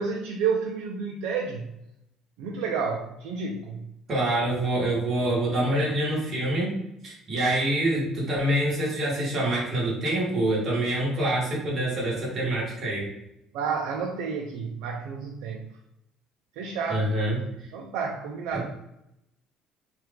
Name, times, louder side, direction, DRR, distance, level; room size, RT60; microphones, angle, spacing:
voice 1, 0.0-1.7 2.4-3.9 13.5-15.7 16.6-17.1 17.7-18.7, right 5 dB, 80° right, 1 dB, 0.4 m, -30 dB
voice 2, 4.1-6.7 7.0-13.1 16.9-17.4 18.5-18.7, right 1 dB, 25° right, -5 dB, 1.2 m, -26 dB
2.9 x 2.3 x 3.3 m, 0.83 s
cardioid pair, 160°, 0 cm